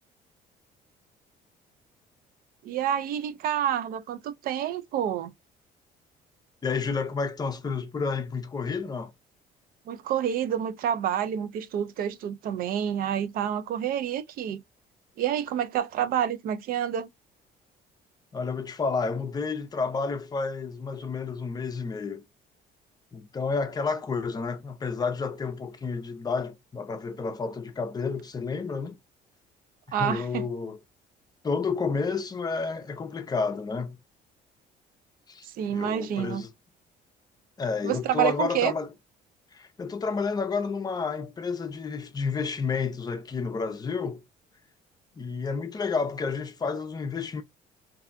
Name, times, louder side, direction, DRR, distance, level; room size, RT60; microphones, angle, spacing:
voice 1, 2.6-5.3 9.9-14.6 15.2-17.1 29.9-30.5 35.5-36.4 37.8-38.7, right 10 dB, 60° right, 0.4 m, -28 dB
voice 2, 6.6-9.1 18.3-22.2 23.1-29.0 30.0-30.8 31.4-34.0 35.3-36.5 37.6-38.9 39.5-44.2 45.2-47.4, left 4 dB, 25° left, 0.5 m, -30 dB
2.6 x 2.1 x 2.4 m
cardioid pair, 110°, 17 cm